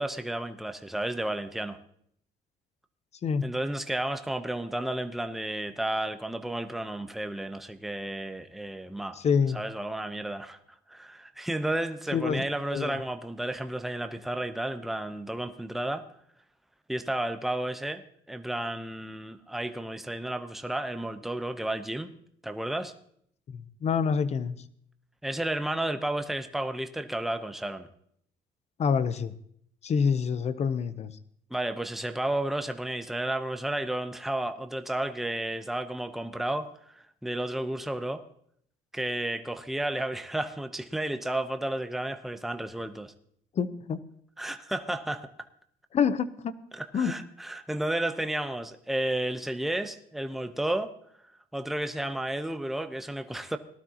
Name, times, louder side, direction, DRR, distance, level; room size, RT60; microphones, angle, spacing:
voice 1, 0.0-1.8 3.4-9.2 9.5-10.6 10.9-16.0 16.9-18.0 18.3-22.1 22.4-22.9 25.2-27.9 31.5-38.2 38.9-43.1 44.4-45.3 46.7-50.9 51.5-53.6, right 1 dB, ahead, 8 dB, 0.7 m, -32 dB
voice 2, 9.2-9.6 12.1-12.4 12.7-13.0 23.5-24.6 28.8-29.3 29.8-31.1 43.6-44.0 45.9-46.6 46.9-47.1, left 6 dB, 40° left, 14 dB, 0.8 m, -27 dB
18.5 x 12.5 x 2.9 m, 0.67 s
cardioid pair, 110°, 17 cm